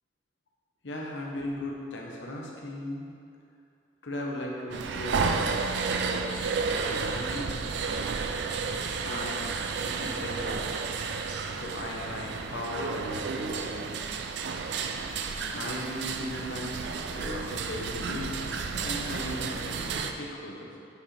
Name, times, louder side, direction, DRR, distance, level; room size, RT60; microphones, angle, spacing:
voice 1, 0.8-3.1 4.0-5.4 6.0-7.5 9.0-9.5 9.8-10.8 11.5-13.9 15.5-18.4 18.8-20.7, left 1 dB, 75° left, -2 dB, 1.0 m, -37 dB
sound 1, 4.7-20.1, right 5 dB, 65° right, 0.4 m, -32 dB
8.3 x 5.0 x 3.3 m, 2.4 s
head